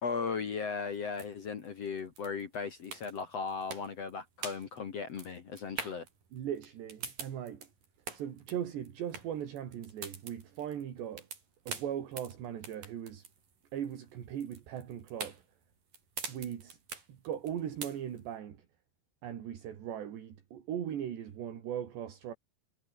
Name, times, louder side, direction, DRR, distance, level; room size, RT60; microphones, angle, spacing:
voice 1, 0.0-6.1, left 5 dB, 50° left, 2.0 m, -37 dB
sound 1, 0.9-18.4, right 5 dB, 50° right, 6.5 m, -45 dB
voice 2, 6.3-7.7 8.1-11.3 11.7-13.3 13.7-15.4 16.3-16.8 17.1-18.7 19.2-22.3, right 9 dB, 70° right, 4.9 m, -39 dB
omnidirectional pair, 5.3 m